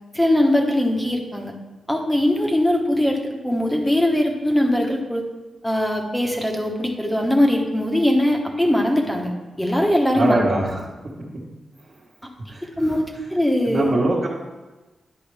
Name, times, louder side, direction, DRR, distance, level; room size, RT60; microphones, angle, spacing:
voice 1, 0.1-1.5 1.9-5.2 5.6-10.4 12.6-13.9, left 1 dB, 5° left, 1 dB, 1.1 m, -21 dB
voice 2, 10.1-10.8 12.5-13.0 13.6-14.3, right 2 dB, 45° right, -7 dB, 1.5 m, -22 dB
10.5 x 5.0 x 3.4 m, 1.2 s
wide cardioid pair, 105°, 0 cm